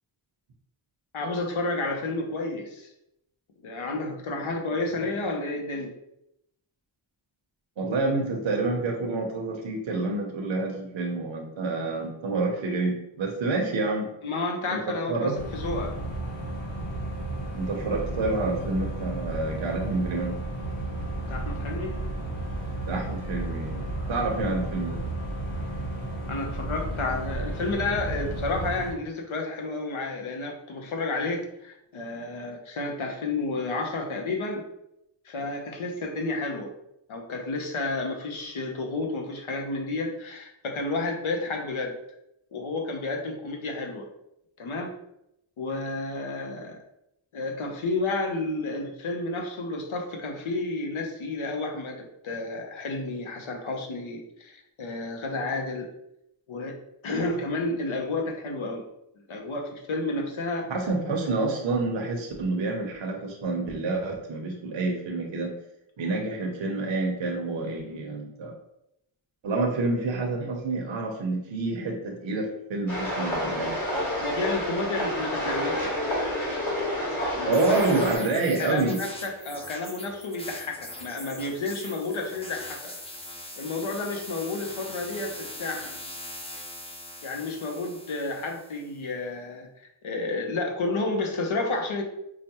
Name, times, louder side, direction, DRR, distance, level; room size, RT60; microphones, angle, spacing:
voice 1, 1.1-2.9 3.6-5.9 14.2-15.9 21.3-21.9 26.2-34.6 35.2-36.7 37.1-41.9 42.5-44.1 44.6-44.9 45.6-46.8 47.3-55.9 56.5-56.8 57.0-58.8 59.3-60.7 74.2-75.9 77.3-83.0 83.6-86.0 87.2-92.0, left 2 dB, 75° left, 2 dB, 0.7 m, -31 dB
voice 2, 7.8-14.1 14.7-15.4 17.5-20.3 22.9-25.0 60.7-65.5 66.0-68.5 69.4-73.7 77.4-79.0, right 3 dB, 65° right, 1 dB, 0.7 m, -28 dB
sound 1, 15.3-28.9, right 1 dB, 90° left, 1.2 m, -33 dB
sound 2, 72.9-78.2, left 1 dB, 35° left, 1.5 m, -29 dB
sound 3, 77.5-88.9, left 1 dB, 10° left, 0.5 m, -42 dB
4.8 x 2.1 x 2.8 m, 0.81 s
wide cardioid pair, 70°, 50 cm